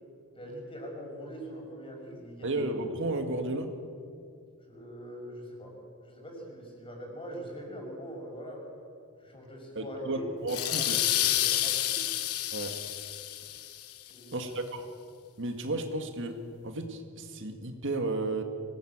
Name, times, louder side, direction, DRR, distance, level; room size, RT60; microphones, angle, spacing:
voice 1, 0.3-2.6 4.7-5.7 6.0-8.6 9.2-10.9 11.2-12.0 14.1-14.5, equal, 25° left, 0 dB, 6.1 m, -42 dB
voice 2, 2.4-3.7 9.8-11.0 12.5-12.8 14.3-14.9 15.4-18.4, right 2 dB, 60° right, 5 dB, 2.0 m, -33 dB
sound 1, 10.5-13.9, left 12 dB, 85° left, 1.3 m, -29 dB
25.0 x 18.0 x 8.9 m, 2.4 s
head